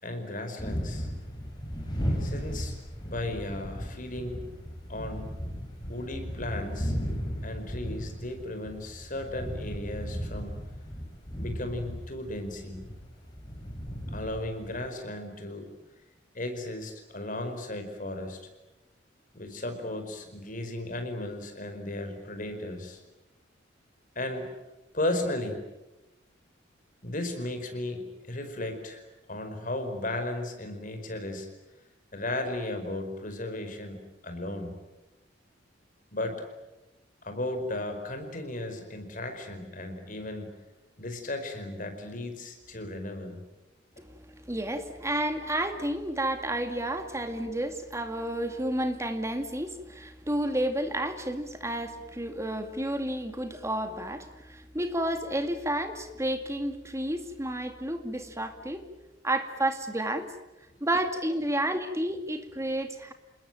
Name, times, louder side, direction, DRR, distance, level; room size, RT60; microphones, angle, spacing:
voice 1, 0.0-1.1 2.2-2.7 3.0-4.4 4.9-5.3 5.9-6.9 7.4-10.5 11.4-12.9 14.1-15.7 16.3-18.4 19.3-23.0 24.1-24.5 24.9-25.6 27.0-29.0 29.3-31.5 32.1-34.7 36.1-36.4 37.2-40.5 41.0-43.4 60.7-60.8, left 1 dB, 45° left, 6 dB, 4.9 m, -35 dB
sound 1, 0.6-14.8, equal, 20° left, 7.3 m, -36 dB
voice 2, 44.0-58.8 59.2-60.3 60.8-63.1, right 1 dB, 15° right, 7 dB, 2.3 m, -31 dB
28.5 x 20.5 x 9.2 m, 1.0 s
head